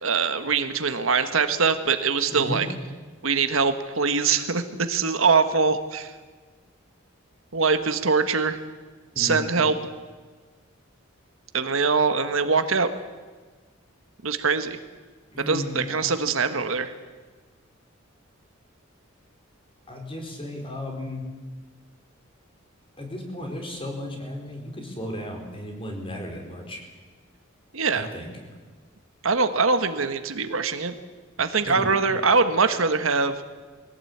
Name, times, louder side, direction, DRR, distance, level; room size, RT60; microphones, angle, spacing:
voice 1, 0.0-2.7 3.2-6.1 7.5-8.6 9.2-9.7 11.5-12.9 14.2-14.8 15.4-16.9 27.7-28.1 29.2-30.9 31.4-33.3, right 4 dB, 75° right, 9 dB, 1.5 m, -23 dB
voice 2, 2.3-2.6 9.1-9.4 15.3-16.0 19.9-21.3 23.0-26.8 27.9-28.3 31.6-31.9, left 1 dB, 25° left, 2 dB, 4.5 m, -34 dB
22.0 x 17.0 x 8.7 m, 1.4 s
head